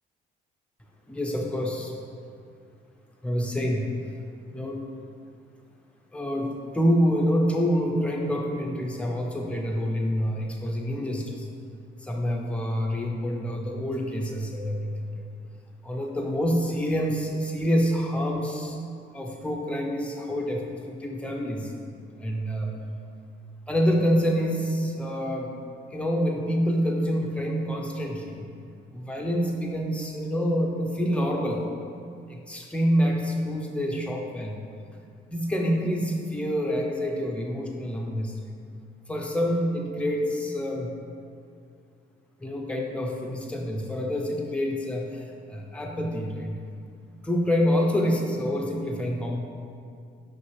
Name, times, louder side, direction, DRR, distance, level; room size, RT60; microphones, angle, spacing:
voice 1, 1.1-1.9 3.2-3.9 4.5-4.8 6.1-11.5 12.0-15.2 15.8-18.8 19.1-21.7 22.2-22.8 23.7-25.5 25.9-28.5 28.9-31.6 32.3-34.6 35.3-38.5 39.1-40.9 42.4-46.6 47.2-49.4, equal, 5° left, -1 dB, 0.8 m, -27 dB
5.9 x 5.1 x 3.3 m, 2.4 s
cardioid pair, 90°, 20 cm